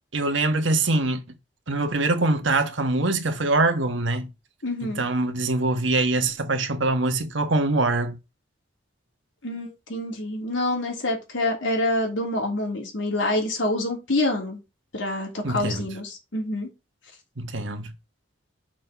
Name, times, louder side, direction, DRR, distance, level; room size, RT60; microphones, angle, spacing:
voice 1, 0.1-1.2 1.7-4.3 4.8-8.2 15.4-15.9 17.4-17.9, right 2 dB, 85° right, 1.4 m, -23 dB
voice 2, 4.6-5.0 9.4-14.6 14.9-16.7, left 1 dB, 85° left, 3.0 m, -27 dB
6.3 x 4.4 x 5.8 m
head